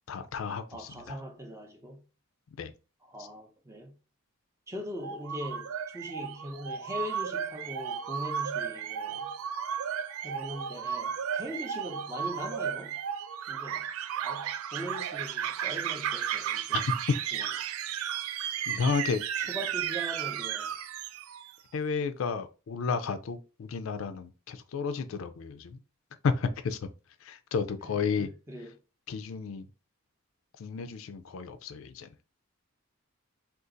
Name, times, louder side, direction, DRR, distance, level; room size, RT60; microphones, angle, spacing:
voice 1, 0.1-1.2 2.6-2.7 3.2-3.3 16.7-16.8 18.7-19.2 21.7-25.8 26.2-26.9 27.2-28.3 29.1-29.7 30.6-32.1, left 5 dB, 70° left, 0.4 m, -32 dB
voice 2, 0.7-2.0 3.1-4.0 4.7-9.3 10.2-13.0 13.5-13.9 14.2-16.8 17.3-17.5 19.4-20.7 28.2-28.7, equal, 15° right, 0.6 m, -41 dB
sound 1, 5.0-21.5, right 9 dB, 80° right, 0.3 m, -34 dB
2.5 x 2.4 x 3.8 m
head